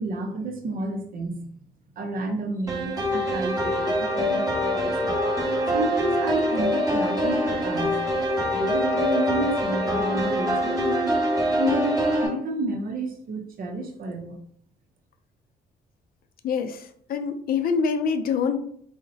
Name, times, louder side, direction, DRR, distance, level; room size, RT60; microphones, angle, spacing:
voice 1, 0.0-1.5 2.0-5.3 5.7-8.0 8.5-11.2 11.5-14.4, right 2 dB, 60° right, 4 dB, 0.6 m, -30 dB
sound 1, 2.7-12.3, equal, 20° right, 1.4 m, -24 dB
voice 2, 16.4-18.7, left 5 dB, 60° left, 8 dB, 0.4 m, -25 dB
3.8 x 2.1 x 2.7 m, 0.64 s
cardioid pair, 85°, 17 cm